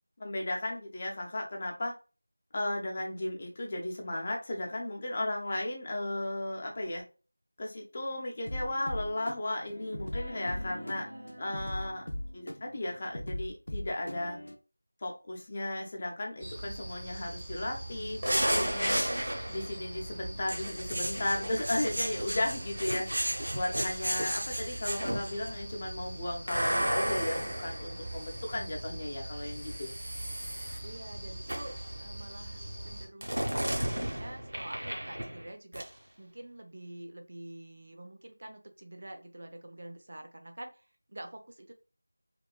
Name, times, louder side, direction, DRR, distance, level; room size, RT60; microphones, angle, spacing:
voice 1, 0.2-1.9 2.5-7.0 7.6-11.1 11.4-12.0 12.3-14.4 15.0-19.0 19.5-29.9, left 1 dB, 25° left, 0 dB, 0.6 m, -35 dB
sound 1, 8.4-14.6, left 1 dB, 75° left, 0.4 m, -39 dB
voice 2, 10.6-11.6 30.8-41.7, right 1 dB, 50° right, 5 dB, 0.4 m, -47 dB
sound 2, 16.4-33.1, right 1 dB, 10° right, 0.7 m, -42 dB
sound 3, 18.2-19.8 20.5-25.5 26.5-28.6 29.6-30.8 31.5-31.8 33.2-35.5 35.7-35.9, right 1 dB, 70° right, 0.8 m, -33 dB
2.9 x 2.1 x 2.3 m, 0.34 s
figure-of-eight pair, 175°, 0 cm